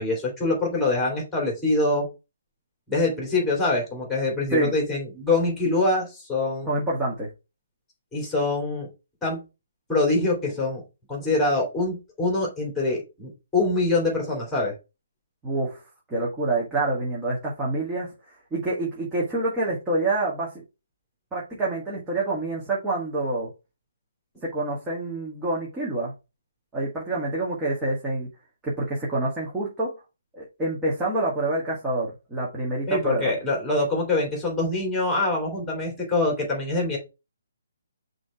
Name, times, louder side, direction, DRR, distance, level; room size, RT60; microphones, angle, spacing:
voice 1, 0.0-2.1 2.9-6.7 8.1-8.9 9.2-9.4 9.9-10.8 11.1-14.7 32.9-37.0, left 2 dB, 5° left, -1 dB, 2.7 m, -24 dB
voice 2, 6.7-7.3 15.4-15.8 16.1-20.6 21.3-23.5 24.4-26.1 26.7-28.3 28.6-29.9 30.3-33.3, right 2 dB, 10° right, -6 dB, 1.7 m, -27 dB
6.1 x 3.2 x 4.8 m, 0.27 s
figure-of-eight pair, 140°, 0 cm